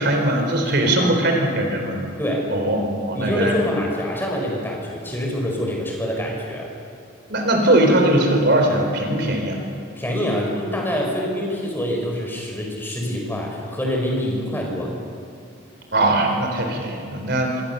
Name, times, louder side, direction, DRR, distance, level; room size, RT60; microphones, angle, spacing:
voice 1, 0.0-2.0 2.5-3.7 7.3-9.6 15.9-17.6, right 1 dB, 50° right, 3 dB, 4.0 m, -20 dB
voice 2, 0.7-1.1 2.2-2.5 3.1-6.7 9.9-14.9, equal, 10° left, -1 dB, 5.0 m, -25 dB
27.0 x 25.0 x 6.9 m, 2.5 s
head